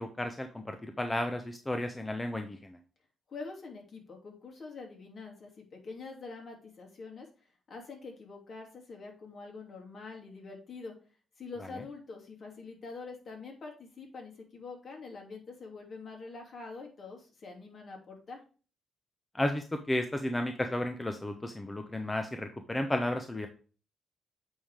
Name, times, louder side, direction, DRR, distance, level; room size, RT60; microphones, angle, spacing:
voice 1, 0.0-2.8 19.3-23.5, left 1 dB, 15° left, 6 dB, 0.8 m, -33 dB
voice 2, 3.3-7.3 7.7-10.9 11.4-18.4, left 4 dB, 55° left, 0 dB, 2.8 m, -45 dB
8.5 x 3.7 x 4.9 m, 0.37 s
supercardioid pair, 70°, 0 cm